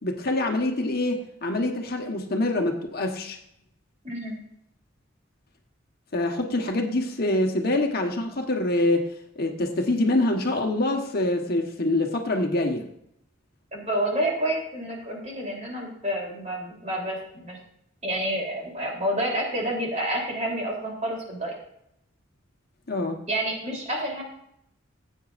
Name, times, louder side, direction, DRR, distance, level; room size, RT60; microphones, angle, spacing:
voice 1, 0.0-3.4 6.1-9.1 9.4-12.9 22.9-23.2, left 2 dB, 50° left, 3 dB, 1.2 m, -25 dB
voice 2, 4.0-4.4 13.7-17.6 18.0-21.5 23.3-24.2, right 1 dB, 35° right, -1 dB, 3.3 m, -29 dB
15.5 x 8.5 x 2.5 m, 0.75 s
head